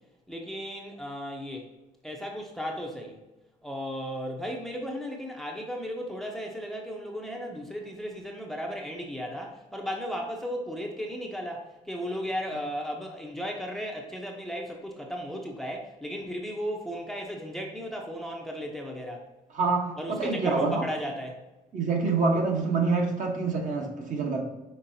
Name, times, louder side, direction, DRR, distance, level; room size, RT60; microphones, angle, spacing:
voice 1, 0.3-1.7 2.0-3.2 3.6-19.3 20.0-21.4, equal, ahead, 1 dB, 0.6 m, -35 dB
voice 2, 19.5-20.8 21.7-24.4, right 4 dB, 50° right, 1 dB, 1.0 m, -26 dB
5.5 x 3.5 x 2.7 m, 1.0 s
cardioid pair, 110°, 17 cm